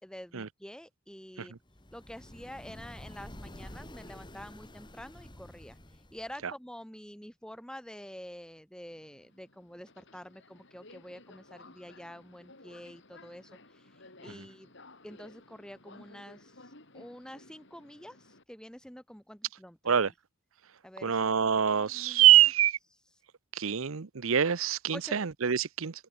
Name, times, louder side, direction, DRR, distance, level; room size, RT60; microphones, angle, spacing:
voice 1, 0.0-1.5 1.9-5.8 6.1-13.9 14.2-14.7 15.0-20.1 20.8-22.4 24.9-25.2, equal, 5° left, 2.0 m, -47 dB
sound 1, 1.7-6.4, left 1 dB, 20° left, 2.5 m, -49 dB
Subway metro underground, 8.9-18.4, left 2 dB, 55° left, 4.3 m, -56 dB
voice 2, 21.0-22.8 23.6-25.9, right 10 dB, 70° right, 0.7 m, -24 dB
open air
head